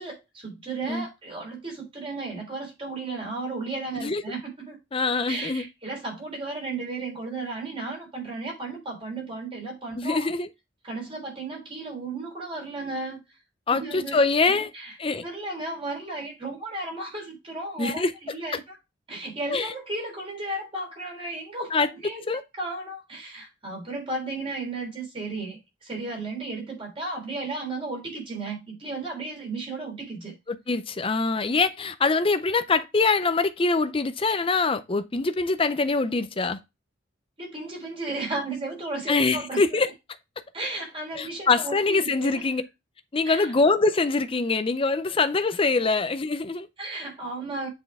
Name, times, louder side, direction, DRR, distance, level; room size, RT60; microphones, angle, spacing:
voice 1, 0.0-4.8 5.3-10.3 10.8-13.2 13.7-14.2 14.5-14.9 15.2-18.8 19.1-30.3 37.4-39.6 40.5-42.4 43.2-43.5 46.8-47.7, right 2 dB, 30° right, 3.6 m, -34 dB
voice 2, 4.9-5.7 10.0-10.5 13.7-14.7 15.0-15.2 17.8-18.1 19.5-19.7 21.7-21.9 22.3-22.4 30.5-36.6 39.1-39.9 41.1-42.6 43.1-46.7, left 3 dB, 30° left, 0.5 m, -24 dB
7.8 x 4.4 x 3.5 m
head